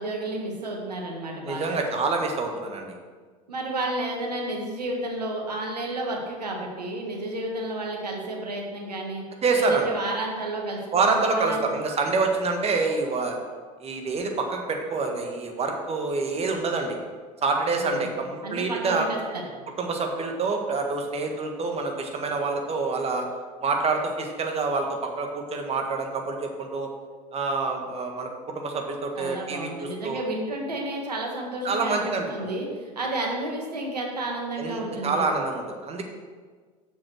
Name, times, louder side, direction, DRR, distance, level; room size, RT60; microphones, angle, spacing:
voice 1, 0.0-1.8 3.5-9.2 9.5-11.6 17.8-18.1 18.4-19.5 29.2-35.2, right 1 dB, 85° right, 0 dB, 1.6 m, -31 dB
voice 2, 1.4-2.9 9.4-9.9 10.9-13.4 13.8-17.0 17.4-19.1 19.8-23.3 23.6-26.9 27.3-30.2 31.6-32.5 34.6-36.0, right 3 dB, 30° right, 3 dB, 1.6 m, -27 dB
7.4 x 6.1 x 6.4 m, 1.5 s
figure-of-eight pair, 75°, 20 cm